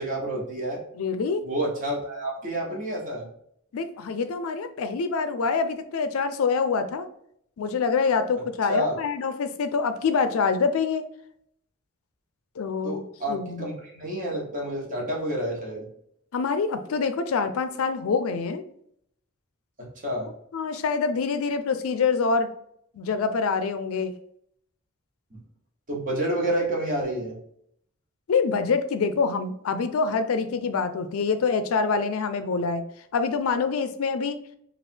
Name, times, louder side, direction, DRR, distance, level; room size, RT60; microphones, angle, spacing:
voice 1, 0.0-0.8 1.4-3.2 8.7-9.0 12.8-15.9 19.8-20.3 25.3-25.4 25.9-27.4, right 1 dB, 40° right, -2 dB, 1.1 m, -29 dB
voice 2, 0.9-1.4 3.7-7.1 7.6-11.1 12.6-13.0 13.3-13.7 16.3-18.6 20.5-22.5 22.9-24.1 28.3-32.8 33.1-34.4, left 5 dB, 85° left, 10 dB, 0.4 m, -25 dB
3.3 x 2.4 x 4.4 m, 0.71 s
head